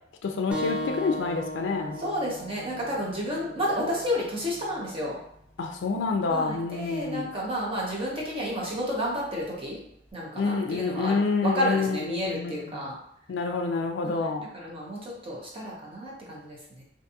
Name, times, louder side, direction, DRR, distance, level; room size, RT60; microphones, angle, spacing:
voice 1, 0.2-2.0 5.6-7.3 10.3-12.5 13.3-14.5, left 4 dB, 70° left, 4 dB, 0.3 m, -28 dB
sound 1, 0.5-5.6, left 1 dB, 5° right, 0.4 m, -37 dB
voice 2, 2.0-5.2 6.3-9.8 10.1-13.0 14.0-16.8, equal, 30° right, -4 dB, 0.8 m, -31 dB
2.5 x 2.3 x 2.7 m, 0.73 s
head